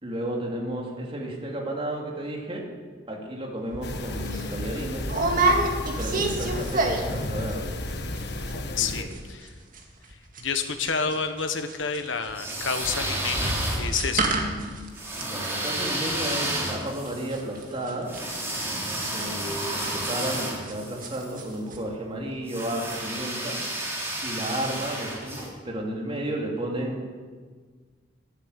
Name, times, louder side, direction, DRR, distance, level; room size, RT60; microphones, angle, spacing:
voice 1, 0.0-2.7 3.1-5.1 6.0-7.7 8.8-9.1 15.1-18.2 19.0-23.6 24.2-27.1, right 1 dB, 30° right, -1 dB, 2.8 m, -32 dB
sound 1, 3.7-3.9 4.3-4.4 5.1-7.2 7.5-7.9 8.2-8.3 8.5-8.8 9.1-20.7 21.0-21.4 21.7-21.8, right 2 dB, 50° right, 2.1 m, -28 dB
sound 2, 3.8-9.0, left 1 dB, 65° left, 1.2 m, -32 dB
voice 2, 8.8-9.5 10.1-14.3, left 5 dB, 85° left, 8 dB, 1.4 m, -29 dB
sound 3, 12.3-14.2 14.9-21.3 22.5-25.5, right 1 dB, 15° right, 3.2 m, -31 dB
13.0 x 11.0 x 8.3 m, 1.5 s
head